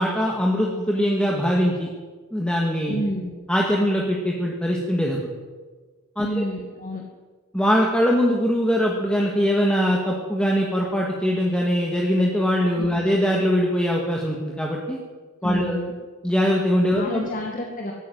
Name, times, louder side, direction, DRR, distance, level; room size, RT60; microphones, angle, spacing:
voice 1, 0.0-1.9 2.3-3.0 3.5-5.3 6.2-6.4 7.5-15.0 15.4-15.8 16.2-17.3, equal, 5° left, -1 dB, 2.1 m, -22 dB
voice 2, 2.9-3.3 6.2-7.0 12.8-13.0 15.4-15.9 16.9-17.9, equal, 35° left, 1 dB, 2.1 m, -29 dB
19.0 x 15.0 x 9.5 m, 1.4 s
head